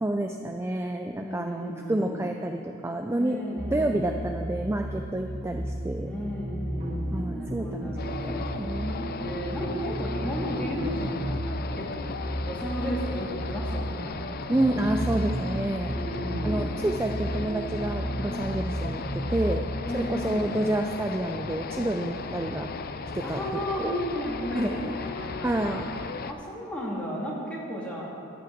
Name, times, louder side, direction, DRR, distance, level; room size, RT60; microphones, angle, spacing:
voice 1, 0.0-3.4 3.7-6.1 7.1-7.9 8.5-9.0 14.5-15.9 16.4-19.6 19.9-22.7 23.1-23.4 23.8-23.9 24.5-24.7 25.4-25.9, right 1 dB, 10° right, 4 dB, 0.4 m, -29 dB
voice 2, 1.2-2.3 3.2-4.2 6.0-8.5 9.2-12.1 12.4-14.2 15.9-16.8 19.8-20.6 23.2-25.9 26.3-28.1, equal, 5° left, -5 dB, 2.3 m, -34 dB
sound 1, 3.6-19.7, right 1 dB, 30° right, 1.1 m, -33 dB
sound 2, 8.0-26.3, left 4 dB, 45° left, 0.5 m, -36 dB
14.0 x 5.6 x 7.8 m, 2.5 s
head